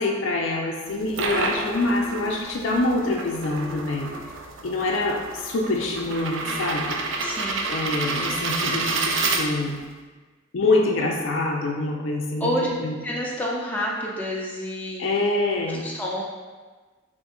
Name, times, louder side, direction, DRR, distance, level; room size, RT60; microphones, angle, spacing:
voice 1, 0.0-4.1 4.6-7.0 7.7-9.8 10.5-13.0 15.0-15.8, left 2 dB, 70° left, 1 dB, 0.5 m, -25 dB
sound 1, 0.9-9.9, right 3 dB, 70° right, 0.4 m, -29 dB
voice 2, 7.2-7.7 12.4-12.7 13.0-15.0 15.3-15.4 15.8-16.2, equal, 10° left, -4 dB, 0.5 m, -28 dB
2.8 x 2.5 x 3.7 m, 1.3 s
head